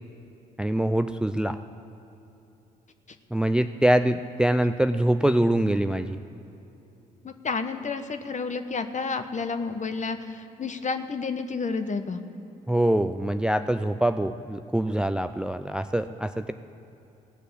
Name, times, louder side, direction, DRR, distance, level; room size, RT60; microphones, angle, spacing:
voice 1, 0.6-1.6 3.3-6.2 12.7-16.5, right 1 dB, 5° right, 10 dB, 0.5 m, -24 dB
voice 2, 7.2-12.2, left 4 dB, 40° left, 9 dB, 1.1 m, -30 dB
17.0 x 6.5 x 8.0 m, 3.0 s
hypercardioid pair, 45°, 20 cm